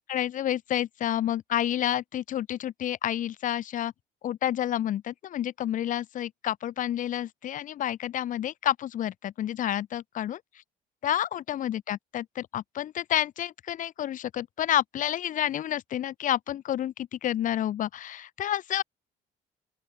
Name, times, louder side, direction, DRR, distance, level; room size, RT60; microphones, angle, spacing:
voice 1, 0.1-3.9 4.2-10.4 11.0-18.8, left 11 dB, 50° left, 0.7 m, -29 dB
open air
cardioid pair, 110°, 17 cm